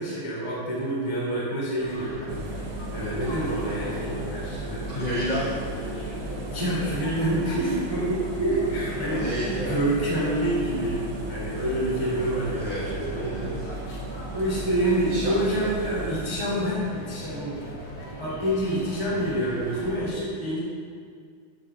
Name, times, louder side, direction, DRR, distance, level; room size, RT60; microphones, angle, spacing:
voice 1, 0.0-4.9 6.5-13.7 14.3-17.7 18.2-20.6, right 1 dB, 10° right, -8 dB, 2.0 m, -27 dB
sound 1, 1.8-20.1, equal, 40° left, 2.8 m, -39 dB
Engine, 2.3-16.3, right 3 dB, 85° right, 2.0 m, -37 dB
voice 2, 4.9-6.5 9.1-9.8 12.5-12.9 13.2-13.7 15.1-15.7, equal, 10° left, -8 dB, 2.7 m, -31 dB
15.0 x 11.0 x 3.7 m, 2.1 s
omnidirectional pair, 5.7 m